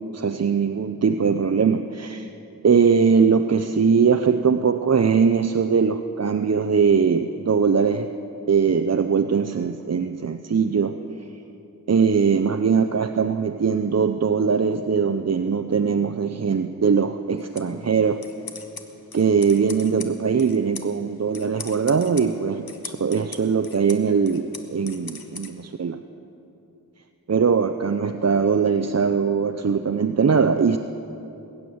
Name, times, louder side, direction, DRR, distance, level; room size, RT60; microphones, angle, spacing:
voice 1, 0.1-2.3 2.6-8.1 8.5-11.0 11.9-18.2 19.1-26.0 27.3-30.8, right 6 dB, 45° right, 8 dB, 0.5 m, -21 dB
sound 1, 17.4-25.5, left 4 dB, 80° left, 1.2 m, -42 dB
21.5 x 9.4 x 7.1 m, 2.9 s
wide cardioid pair, 45°, 36 cm